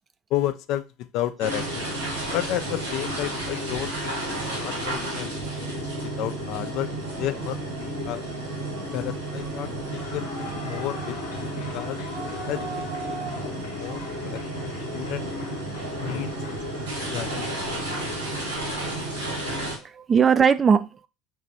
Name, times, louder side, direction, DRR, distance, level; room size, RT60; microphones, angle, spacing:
voice 1, 0.3-1.9 2.3-4.1 4.5-6.9 7.2-8.2 8.9-9.9 10.1-12.0 12.5-15.2 16.0-16.3 17.1-17.5, left 12 dB, 60° left, 11 dB, 0.3 m, -32 dB
sound 1, 1.4-19.8, right 1 dB, 90° right, 1.2 m, -32 dB
Clapping / Cheering / Applause, 9.8-17.2, right 1 dB, 85° left, 0.8 m, -41 dB
voice 2, 19.7-21.1, right 6 dB, 30° right, 13 dB, 0.3 m, -21 dB
3.1 x 2.6 x 3.9 m, 0.29 s
hypercardioid pair, 70°, 0 cm